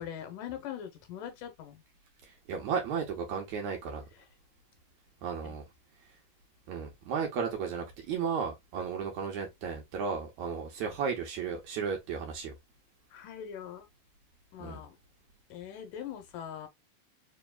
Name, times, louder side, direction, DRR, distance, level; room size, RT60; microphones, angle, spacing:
voice 1, 0.0-1.8 5.4-5.5 13.1-13.9 14.5-15.0 15.5-16.7, left 9 dB, 75° left, 2.4 m, -42 dB
voice 2, 2.5-4.0 5.2-5.6 6.7-12.5 14.6-14.8, right 6 dB, 70° right, 2.2 m, -34 dB
5.3 x 2.9 x 2.2 m
omnidirectional pair, 3.8 m